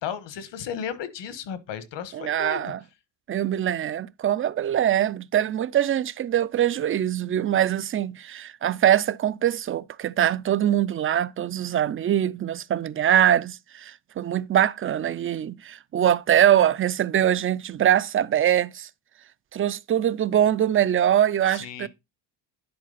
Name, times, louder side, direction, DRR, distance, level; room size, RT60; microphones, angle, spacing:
voice 1, 0.0-2.7 21.5-21.9, left 8 dB, 65° left, 1.5 m, -34 dB
voice 2, 2.1-2.8 3.3-18.9 19.5-21.9, right 10 dB, 30° right, 0.4 m, -23 dB
10.5 x 4.7 x 4.0 m
cardioid pair, 110°, 46 cm